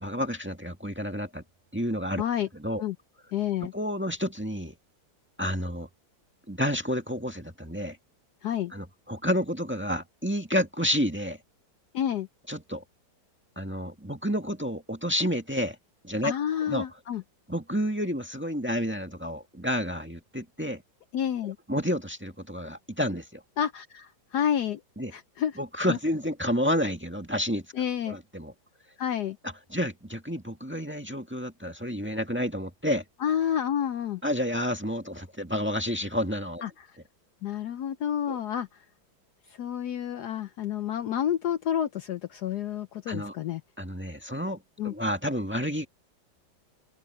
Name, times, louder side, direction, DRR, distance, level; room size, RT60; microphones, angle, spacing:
voice 1, 0.0-1.4 1.7-2.2 2.6-2.8 3.7-4.7 5.4-5.9 6.5-8.0 8.7-11.4 12.5-12.8 13.5-15.7 16.0-16.3 16.7-16.8 17.5-20.8 21.4-23.4 25.0-25.1 25.6-27.6 28.1-28.5 29.7-33.0 34.2-36.6 38.3-38.4 43.1-43.3 43.8-44.6 44.8-45.9, equal, 5° right, 1.6 m, -30 dB
voice 2, 2.2-2.5 2.8-3.0 3.3-3.7 8.4-8.7 11.9-12.3 16.2-17.2 21.1-21.6 23.6-24.8 25.1-25.6 25.9-26.0 27.7-28.2 29.0-29.4 33.2-34.2 36.6-37.0 37.4-38.8 39.5-43.6 44.8-44.9, left 9 dB, 70° left, 1.1 m, -29 dB
open air
omnidirectional pair, 2.1 m